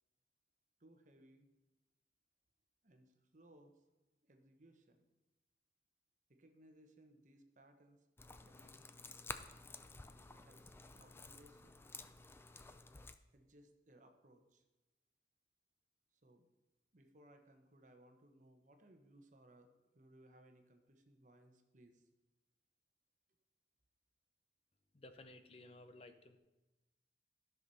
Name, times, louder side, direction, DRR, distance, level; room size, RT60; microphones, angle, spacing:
voice 1, 0.8-1.5 2.8-3.8 4.2-5.1 6.3-8.1 8.4-8.8 10.4-11.8 13.3-14.6 16.1-16.5 16.9-19.7 19.9-22.1, right 1 dB, 45° right, 5 dB, 1.1 m, -65 dB
sound 1, 8.2-13.2, left 3 dB, 15° left, 0.4 m, -52 dB
voice 2, 24.9-26.4, left 2 dB, 35° left, 8 dB, 0.8 m, -56 dB
13.0 x 6.0 x 5.5 m, 1.1 s
head